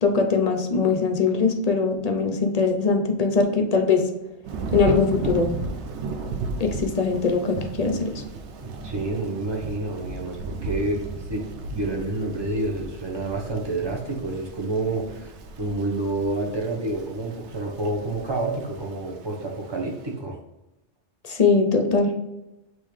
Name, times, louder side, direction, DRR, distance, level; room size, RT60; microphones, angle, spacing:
voice 1, 0.0-4.0 4.7-5.5 6.6-8.1 21.3-22.1, left 4 dB, 45° left, 4 dB, 0.6 m, -21 dB
Thunder / Rain, 4.4-20.0, right 3 dB, 90° right, 0.9 m, -35 dB
voice 2, 8.6-11.0 11.3-11.4 11.7-20.4, right 2 dB, 25° right, 0 dB, 0.8 m, -28 dB
5.4 x 3.1 x 3.2 m, 0.99 s
omnidirectional pair, 1.1 m